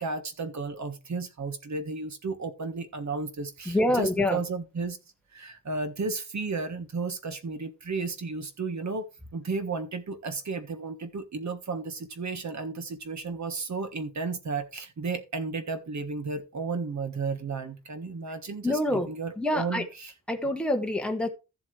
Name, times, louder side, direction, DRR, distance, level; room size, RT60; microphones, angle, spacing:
voice 1, 0.0-5.0 5.3-20.1, right 4 dB, 60° right, 1.5 m, -33 dB
voice 2, 3.7-4.4 18.6-19.1 19.4-19.9 20.3-21.3, left 1 dB, 5° left, 1.3 m, -26 dB
13.5 x 7.7 x 3.3 m
wide cardioid pair, 105°, 32 cm